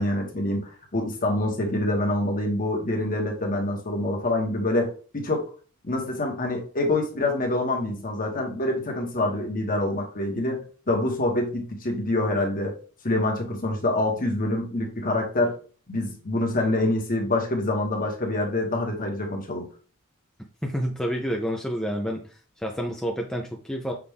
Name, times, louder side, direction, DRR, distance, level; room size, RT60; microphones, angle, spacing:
voice 1, 0.0-5.4 5.8-12.7 13.0-15.6 15.9-19.7, left 1 dB, 40° left, 1 dB, 1.2 m, -26 dB
voice 2, 20.6-22.2 22.6-23.9, equal, 5° left, 1 dB, 0.5 m, -29 dB
5.9 x 2.4 x 3.5 m, 0.39 s
head